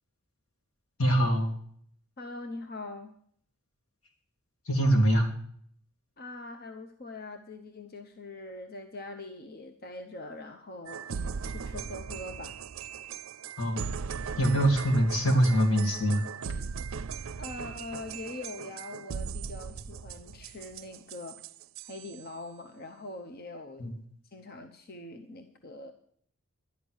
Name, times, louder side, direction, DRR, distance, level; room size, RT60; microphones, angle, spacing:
voice 1, 1.0-1.5 4.7-5.3 13.6-13.8 14.4-16.2 23.8-23.9, right 1 dB, 80° left, 3 dB, 2.8 m, -24 dB
voice 2, 2.2-3.2 6.2-12.6 17.4-21.4 21.8-23.9 24.3-25.9, left 2 dB, 45° left, 6 dB, 0.8 m, -43 dB
sound 1, 10.9-22.2, right 6 dB, 65° right, 0.5 m, -38 dB
11.5 x 9.9 x 6.3 m, 0.62 s
head